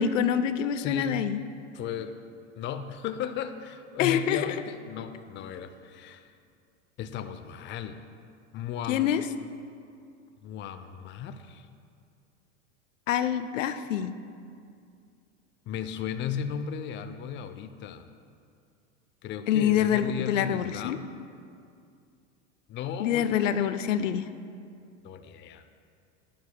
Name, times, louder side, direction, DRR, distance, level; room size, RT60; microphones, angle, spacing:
voice 1, 0.0-1.4 4.0-4.5 8.9-9.2 13.1-14.2 19.5-21.0 23.0-24.3, left 9 dB, 80° left, 11 dB, 0.6 m, -26 dB
voice 2, 0.7-1.3 1.7-2.1 2.6-6.3 7.0-8.0 8.5-9.1 10.4-11.7 15.7-18.1 19.2-21.1 22.7-23.8 25.0-25.6, left 8 dB, 30° left, 9 dB, 0.5 m, -36 dB
12.5 x 10.5 x 2.2 m, 2.3 s
hypercardioid pair, 95°, 37 cm